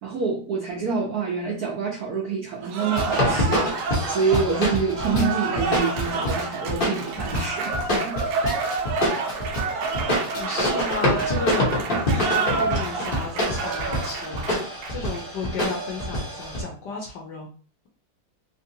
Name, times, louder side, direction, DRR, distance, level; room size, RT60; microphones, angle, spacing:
voice 1, 0.0-8.2, right 5 dB, 70° right, -3 dB, 0.9 m, -27 dB
Cheering / Applause, 2.6-15.2, right 4 dB, 90° right, 1.5 m, -29 dB
sound 1, 3.0-16.6, left 1 dB, 50° left, 0.6 m, -26 dB
voice 2, 10.3-17.5, left 3 dB, 70° left, 0 dB, 1.1 m, -34 dB
3.6 x 2.6 x 2.7 m, 0.41 s
omnidirectional pair, 2.4 m